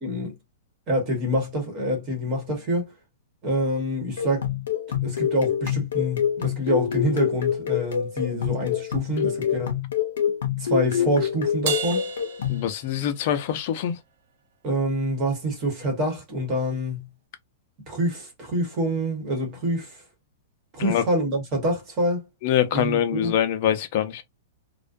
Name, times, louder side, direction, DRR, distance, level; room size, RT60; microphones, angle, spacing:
voice 1, 0.0-0.3 0.9-2.9 3.4-4.5 5.0-9.8 10.6-12.0 14.6-17.1 17.9-20.0 20.7-22.2 22.7-23.3, equal, 25° right, 1.1 m, -26 dB
sound 1, 4.2-12.7, left 9 dB, 90° left, 0.5 m, -26 dB
Crash cymbal, 11.7-13.4, right 8 dB, 50° right, 0.6 m, -32 dB
voice 2, 12.5-13.9 20.8-21.0 22.4-24.2, left 10 dB, 40° left, 0.5 m, -24 dB
2.4 x 2.1 x 2.5 m
supercardioid pair, 165°, 0 cm